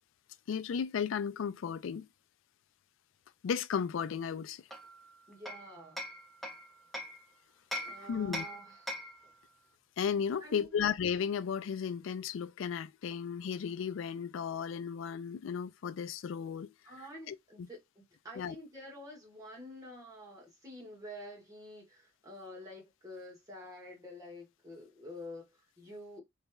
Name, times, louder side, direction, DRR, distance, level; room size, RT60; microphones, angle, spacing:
voice 1, 0.5-2.1 3.4-4.6 8.1-8.4 10.0-16.7 17.3-17.4 18.4-18.6, left 7 dB, 70° left, 0.3 m, -34 dB
Hammer, 4.7-7.2 7.7-9.3, equal, ahead, 0.6 m, -41 dB
voice 2, 5.3-6.0 7.8-9.3 10.4-10.9 16.8-26.2, left 1 dB, 20° right, 1.6 m, -49 dB
3.9 x 3.2 x 2.3 m
head